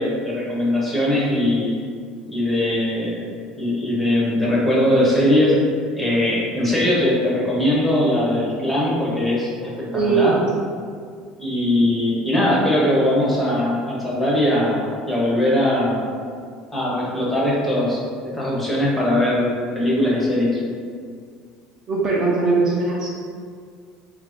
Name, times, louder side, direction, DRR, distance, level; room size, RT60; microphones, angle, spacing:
voice 1, 0.0-1.7 2.3-3.3 3.6-5.6 5.9-10.4 11.4-16.1 16.7-18.0 18.3-20.6, left 1 dB, 5° left, -6 dB, 0.6 m, -20 dB
voice 2, 9.9-10.4 21.9-23.1, right 4 dB, 30° right, -3 dB, 0.4 m, -20 dB
2.9 x 2.4 x 3.4 m, 2.1 s
cardioid pair, 160°, 2 cm